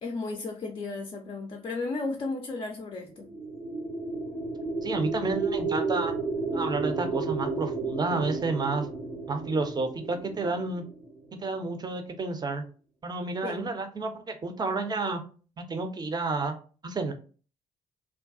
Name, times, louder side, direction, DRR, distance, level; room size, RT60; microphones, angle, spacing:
voice 1, 0.0-3.3 13.4-13.6, left 3 dB, 30° left, 1 dB, 0.4 m, -34 dB
sound 1, 3.2-11.3, right 3 dB, 85° right, 0.8 m, -32 dB
voice 2, 4.8-6.1 6.5-8.9 9.3-10.8 11.3-12.6 13.0-15.2 15.6-16.6 16.8-17.1, right 3 dB, 25° right, 6 dB, 0.5 m, -30 dB
2.3 x 2.2 x 2.4 m, 0.38 s
figure-of-eight pair, 40°, 18 cm